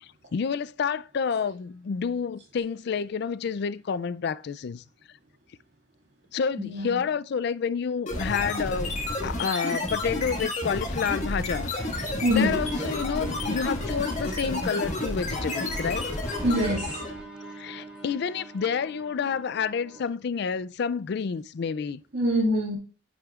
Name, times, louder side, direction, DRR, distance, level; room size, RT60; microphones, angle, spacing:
voice 1, 0.0-4.8 6.3-16.1 17.6-22.0, left 6 dB, 60° left, 0.4 m, -29 dB
voice 2, 6.6-7.0 12.2-12.6 16.4-17.0 22.1-22.8, equal, 75° right, 2.2 m, -24 dB
sound 1, 8.1-17.2, left 1 dB, 40° left, 1.8 m, -30 dB
sound 2, 12.4-20.1, right 2 dB, 5° right, 3.1 m, -42 dB
9.3 x 6.2 x 2.4 m
head